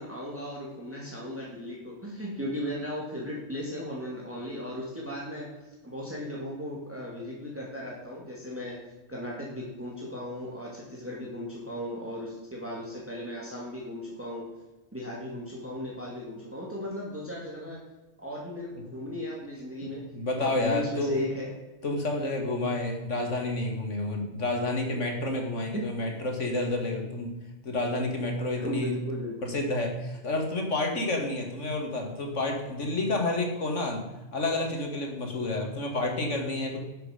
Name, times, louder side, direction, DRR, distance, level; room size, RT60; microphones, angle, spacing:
voice 1, 0.0-5.5 5.8-8.8 9.1-14.5 14.9-17.8 18.2-20.0 20.3-21.5 25.7-25.8 28.6-29.5, left 1 dB, 10° right, -3 dB, 2.4 m, -36 dB
voice 2, 20.1-21.2 21.8-27.3 27.6-28.9 29.4-34.0 34.3-36.8, left 2 dB, 85° left, 2 dB, 2.5 m, -29 dB
12.0 x 7.7 x 5.1 m, 1.1 s
omnidirectional pair, 1.2 m